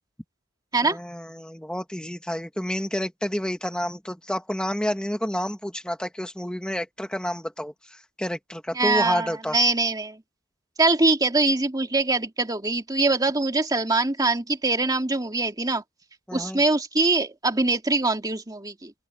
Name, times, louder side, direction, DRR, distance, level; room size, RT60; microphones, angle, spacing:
voice 1, 0.8-9.6 16.3-16.6, equal, 5° left, 1.7 m, -29 dB
voice 2, 8.8-10.2 10.8-15.8 16.3-18.9, right 3 dB, 20° right, 2.2 m, -23 dB
open air
head